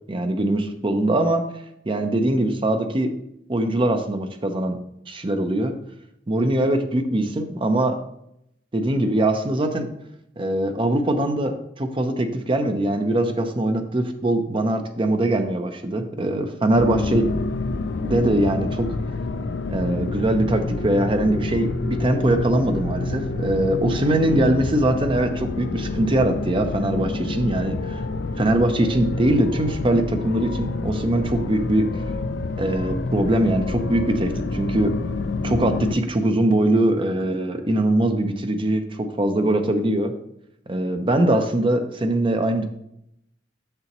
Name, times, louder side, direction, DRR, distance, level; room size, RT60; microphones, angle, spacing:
voice 1, 0.1-1.4 1.9-3.1 3.5-4.8 5.1-5.8 6.3-8.0 8.7-9.9 10.4-17.3 18.0-19.0 19.7-28.0 28.4-31.9 32.6-34.9 35.4-40.1 40.7-42.6, right 1 dB, 30° right, 7 dB, 0.6 m, -22 dB
sound 1, 16.7-35.9, left 3 dB, 65° left, 0.4 m, -28 dB
6.9 x 6.7 x 3.0 m, 0.78 s
head